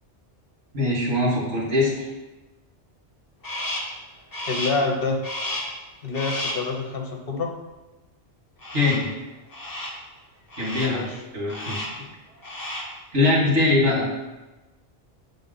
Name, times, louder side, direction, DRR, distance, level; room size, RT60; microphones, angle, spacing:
voice 1, 0.7-2.1 8.7-9.1 10.6-11.0 11.3-11.8 13.1-14.1, left 2 dB, 80° right, -4 dB, 1.9 m, -22 dB
Crow, 3.4-4.0 4.3-4.9 5.2-5.8 6.1-6.7 8.6-9.1 9.5-10.0 10.5-11.0 11.5-12.0 12.4-13.0, left 1 dB, 20° left, 0.8 m, -32 dB
voice 2, 4.5-5.2 6.0-7.5 10.9-11.2, left 3 dB, 55° left, 2 dB, 1.0 m, -27 dB
7.3 x 3.5 x 3.9 m, 1.1 s
omnidirectional pair, 1.2 m